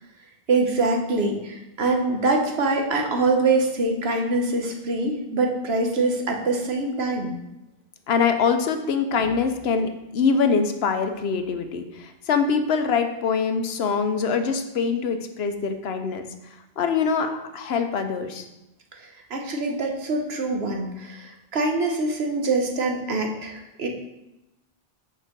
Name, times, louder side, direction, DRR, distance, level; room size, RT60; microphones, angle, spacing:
voice 1, 0.5-7.4 19.0-23.9, right 3 dB, 75° right, 2 dB, 1.3 m, -24 dB
voice 2, 8.1-16.3 16.8-18.4, left 5 dB, 80° left, 7 dB, 1.0 m, -24 dB
6.6 x 4.5 x 6.0 m, 0.94 s
omnidirectional pair, 1.1 m